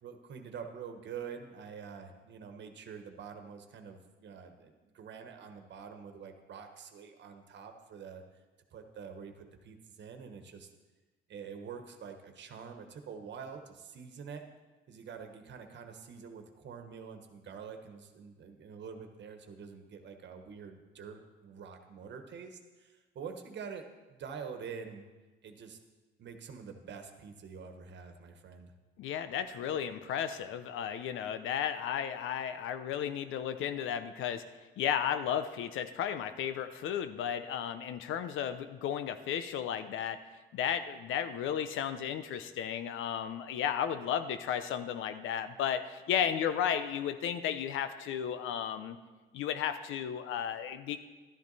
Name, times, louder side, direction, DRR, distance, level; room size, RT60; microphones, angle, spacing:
voice 1, 0.0-8.2 8.7-10.7 11.3-14.4 14.9-25.0 25.4-25.8 26.2-28.7, right 6 dB, 65° right, 6 dB, 1.3 m, -46 dB
voice 2, 29.0-34.4 34.8-40.2 40.5-49.0 49.3-51.0, left 9 dB, 85° left, 11 dB, 0.7 m, -34 dB
12.5 x 10.5 x 4.1 m, 1.3 s
cardioid pair, 90°, 20 cm